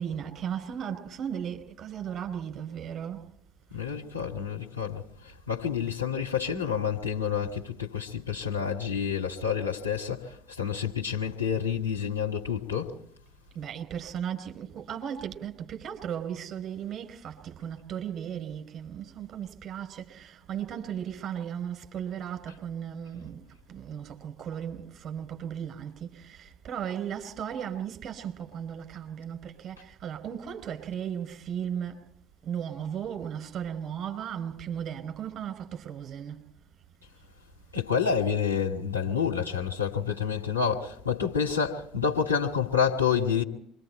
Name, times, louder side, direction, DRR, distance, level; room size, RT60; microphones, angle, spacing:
voice 1, 0.0-3.3 13.5-23.4 23.7-32.1 32.4-36.4, right 8 dB, 40° right, 4.8 m, -36 dB
voice 2, 3.7-13.0 37.7-43.4, left 7 dB, 85° left, 2.3 m, -28 dB
27.5 x 23.0 x 4.5 m
figure-of-eight pair, 65°, 0 cm